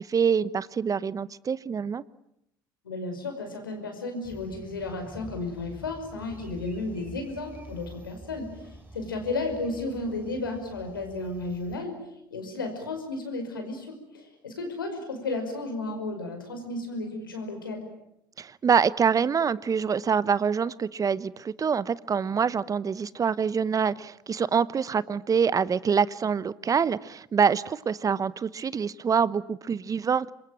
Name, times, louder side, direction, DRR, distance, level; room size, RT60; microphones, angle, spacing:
voice 1, 0.0-2.0 18.4-30.3, right 6 dB, 30° right, 19 dB, 1.0 m, -25 dB
voice 2, 2.8-12.0 12.3-17.9, left 2 dB, 90° left, 5 dB, 5.4 m, -33 dB
sound 1, 4.2-11.8, right 1 dB, 15° right, 7.7 m, -47 dB
26.5 x 23.0 x 9.0 m, 0.77 s
hypercardioid pair, 65°, 11 cm